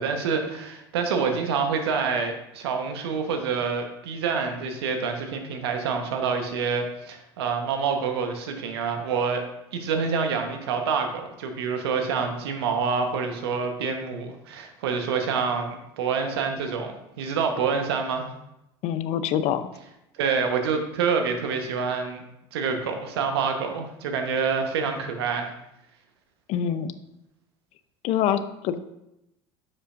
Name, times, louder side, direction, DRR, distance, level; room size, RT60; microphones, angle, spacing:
voice 1, 0.0-18.3 20.1-22.2 22.5-25.5, right 5 dB, 80° right, 5 dB, 1.0 m, -27 dB
voice 2, 18.8-19.7 26.5-26.9 28.0-29.0, left 9 dB, 55° left, 12 dB, 0.5 m, -25 dB
9.5 x 5.5 x 2.5 m, 0.86 s
hypercardioid pair, 80°, 13 cm